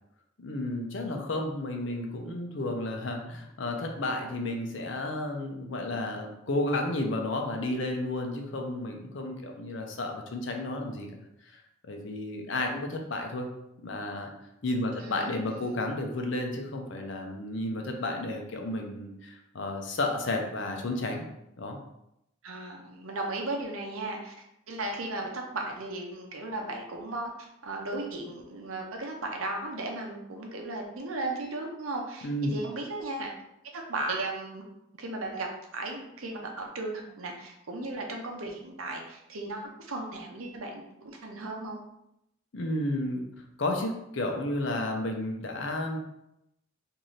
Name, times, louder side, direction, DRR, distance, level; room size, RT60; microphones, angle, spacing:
voice 1, 0.4-11.1 11.4-13.5 13.8-14.3 14.6-21.2 21.6-21.8 32.2-32.5 42.5-43.3 43.6-46.0, left 1 dB, 60° left, 3 dB, 0.6 m, -32 dB
voice 2, 15.0-15.3 15.6-15.8 22.4-24.3 24.7-33.3 33.7-34.6 35.0-41.8, right 2 dB, 85° right, 1 dB, 0.7 m, -36 dB
3.1 x 2.6 x 3.9 m, 0.83 s
head